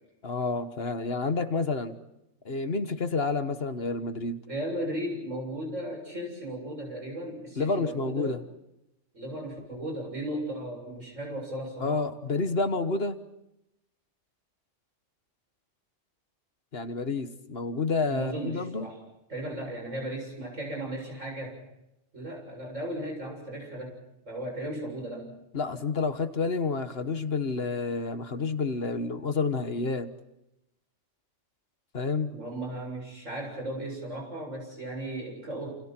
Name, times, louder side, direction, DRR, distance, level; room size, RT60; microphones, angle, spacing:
voice 1, 0.2-2.0 2.4-4.4 7.6-8.4 11.8-13.2 16.7-18.9 25.5-30.1 31.9-32.3, left 4 dB, 55° left, 9 dB, 1.5 m, -29 dB
voice 2, 4.5-8.4 9.1-12.0 18.1-19.0 19.3-21.6 22.1-23.9 24.3-25.3 32.3-35.7, right 1 dB, 85° right, 1 dB, 8.0 m, -36 dB
30.0 x 28.5 x 4.5 m, 0.87 s
omnidirectional pair, 1.3 m